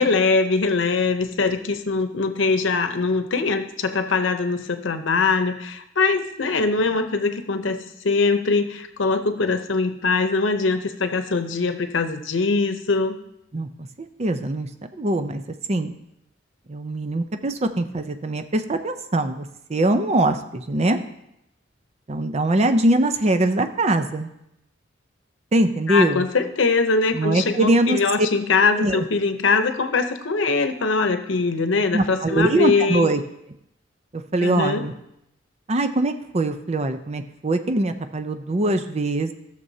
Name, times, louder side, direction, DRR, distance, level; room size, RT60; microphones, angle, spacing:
voice 1, 0.0-13.2 25.9-33.1 34.4-34.8, left 4 dB, 85° left, 8 dB, 0.8 m, -22 dB
voice 2, 14.0-14.7 14.9-15.4 15.7-15.9 16.7-21.0 22.1-24.3 25.5-26.2 27.1-28.0 28.8-29.0 31.9-33.2 34.1-34.9 35.7-39.3, right 1 dB, 35° right, 8 dB, 0.5 m, -22 dB
15.5 x 6.8 x 2.8 m, 0.80 s
head